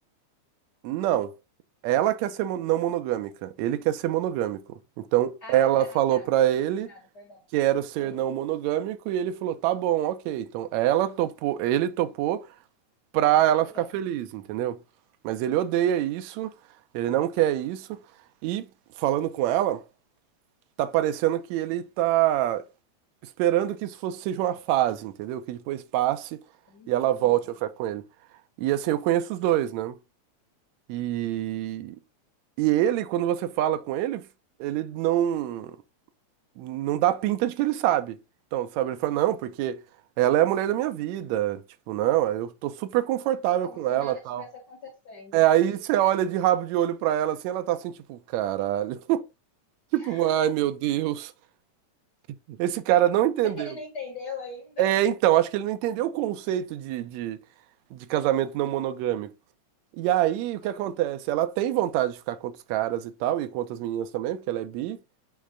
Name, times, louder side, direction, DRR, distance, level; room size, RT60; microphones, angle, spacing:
voice 1, 0.8-1.3 1.8-4.6 5.0-6.9 7.5-12.5 13.1-14.8 15.2-16.5 16.9-18.0 18.4-18.7 19.0-19.8 20.8-22.6 23.4-26.4 26.9-28.0 28.6-30.0 30.9-32.0 32.6-34.3 34.6-35.8 36.6-38.2 38.5-39.8 40.2-41.6 41.9-44.4 45.3-49.2 49.9-51.3 52.5-53.7 54.8-57.4 57.9-59.3 59.9-65.0, right 12 dB, 80° right, 1.9 m, -25 dB
voice 2, 5.4-6.3 6.5-7.5 8.0-8.3 13.3-14.0 15.8-15.9 26.7-27.5 43.6-45.8 50.0-50.5 53.6-54.9 60.6-60.9, left 3 dB, 35° left, 2.5 m, -43 dB
8.3 x 3.2 x 3.7 m
omnidirectional pair, 3.4 m